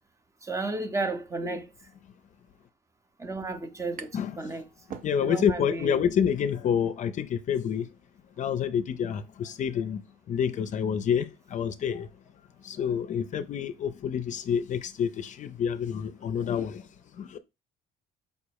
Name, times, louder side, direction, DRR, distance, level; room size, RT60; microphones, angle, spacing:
voice 1, 0.4-1.7 3.2-4.6 5.2-6.0, right 3 dB, 20° right, 0.7 m, -33 dB
sound 1, 2.9-3.0 3.2-4.4 4.7-5.6, right 6 dB, 55° right, 0.6 m, -44 dB
voice 2, 5.0-7.9 8.4-10.0 10.3-12.1 12.6-16.9 17.2-17.4, left 8 dB, 45° left, 0.5 m, -28 dB
5.2 x 2.0 x 4.6 m
cardioid pair, 110°, 17 cm